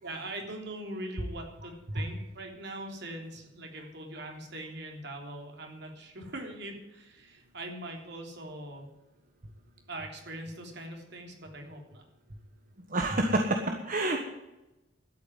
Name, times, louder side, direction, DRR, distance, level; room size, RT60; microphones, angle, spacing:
voice 1, 0.0-8.9 9.9-12.0, right 1 dB, 60° right, 2 dB, 3.5 m, -42 dB
voice 2, 12.9-14.2, right 1 dB, 45° right, 4 dB, 1.3 m, -27 dB
12.5 x 9.0 x 9.4 m, 1.0 s
head